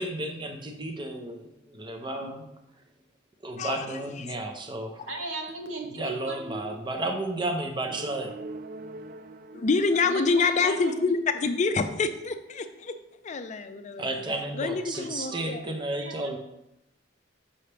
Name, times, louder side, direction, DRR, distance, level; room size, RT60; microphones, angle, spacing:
voice 1, 0.0-2.5 3.4-5.1 5.9-8.3 14.0-16.4, right 2 dB, 25° right, 4 dB, 0.7 m, -33 dB
voice 2, 2.1-2.4 5.1-6.8 10.0-11.0 14.9-16.4, right 2 dB, 80° right, 3 dB, 1.2 m, -38 dB
sound 1, 7.9-10.7, right 2 dB, 45° right, 0.3 m, -42 dB
voice 3, 9.5-12.9 13.2-14.2 14.6-15.6, left 4 dB, 35° left, 9 dB, 0.4 m, -26 dB
7.1 x 5.5 x 3.3 m, 0.85 s
head